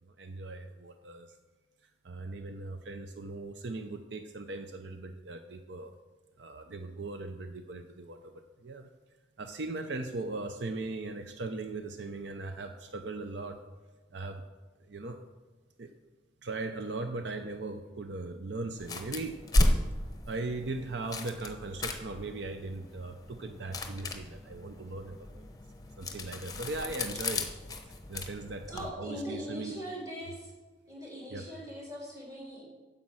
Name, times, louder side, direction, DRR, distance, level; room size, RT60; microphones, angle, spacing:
voice 1, 0.0-1.3 2.0-5.9 6.4-8.9 9.4-13.6 14.1-14.4 14.8-15.2 15.8-15.9 16.4-19.4 20.3-25.4 26.0-27.5 27.9-29.8 31.3-31.5, right 3 dB, 70° right, 7 dB, 0.6 m, -39 dB
sound 1, 18.8-28.9, left 1 dB, 20° left, 0.9 m, -34 dB
voice 2, 28.7-30.5 30.9-32.6, equal, 20° right, -4 dB, 3.4 m, -41 dB
9.5 x 7.6 x 6.2 m, 1.3 s
head